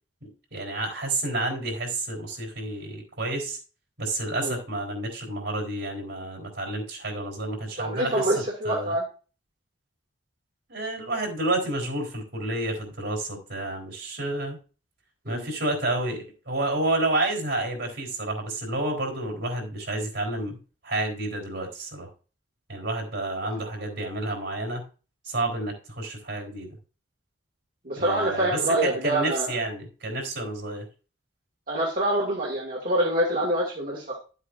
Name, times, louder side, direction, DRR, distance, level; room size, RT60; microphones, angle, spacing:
voice 1, 0.5-3.6 4.0-8.9 10.7-14.6 15.2-20.6 20.8-22.1 22.7-24.9 25.3-26.8 28.0-30.9, right 2 dB, 65° right, 1 dB, 3.8 m, -30 dB
voice 2, 7.8-9.0 15.3-15.5 23.4-23.6 27.9-29.5 31.7-34.2, right 1 dB, 45° right, -4 dB, 2.0 m, -26 dB
12.0 x 8.2 x 2.6 m, 0.35 s
head